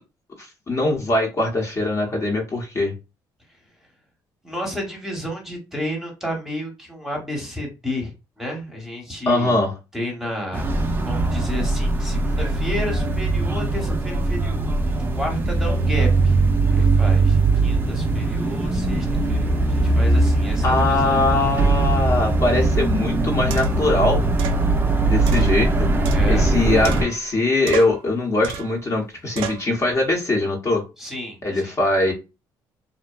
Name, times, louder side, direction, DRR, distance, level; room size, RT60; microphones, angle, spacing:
voice 1, 0.4-2.9 9.3-9.7 20.6-24.2 25.0-25.9 26.3-30.8 31.4-32.1, left 2 dB, 35° left, 0.8 m, -21 dB
voice 2, 4.4-9.6 9.9-10.7 11.0-14.7 15.1-16.4 16.7-21.2 26.1-26.5 31.0-31.8, left 1 dB, 5° right, 0.9 m, -31 dB
sound 1, 10.5-27.0, right 2 dB, 25° right, 0.4 m, -20 dB
sound 2, 23.5-23.9 24.4-24.6 25.3-26.5 26.8-27.4 27.7-28.1 28.4-28.8 29.4-29.7, right 8 dB, 80° right, 0.4 m, -32 dB
2.5 x 2.2 x 2.2 m
cardioid pair, 100°, 9 cm